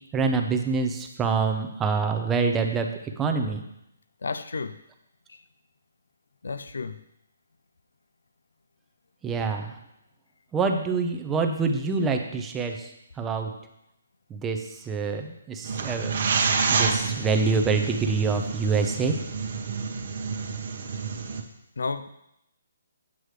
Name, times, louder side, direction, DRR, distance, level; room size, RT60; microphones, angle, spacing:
voice 1, 0.1-3.6 9.2-9.8 10.5-13.5 14.3-16.3 16.7-19.2, right 4 dB, 10° right, 4 dB, 0.7 m, -26 dB
voice 2, 4.2-4.8 5.3-5.4 6.4-7.0 21.8-22.1, left 4 dB, 80° left, 11 dB, 0.5 m, -32 dB
sound 1, 15.6-21.4, right 5 dB, 50° right, 1.0 m, -28 dB
8.3 x 7.6 x 3.3 m, 0.82 s
hypercardioid pair, 160°, 0 cm